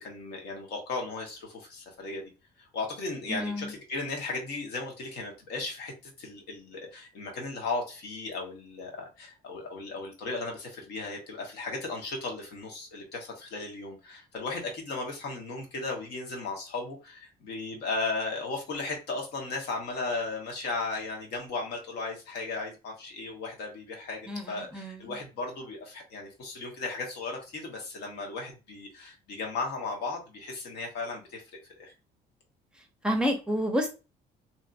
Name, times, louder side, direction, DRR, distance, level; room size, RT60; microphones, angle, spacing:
voice 1, 0.0-2.2 2.6-31.4 31.8-31.9, left 3 dB, 75° left, 1.1 m, -36 dB
voice 2, 3.3-3.7 24.3-25.1 33.0-33.9, equal, 5° right, 0.6 m, -29 dB
2.8 x 2.4 x 2.4 m
cardioid pair, 110°, 17 cm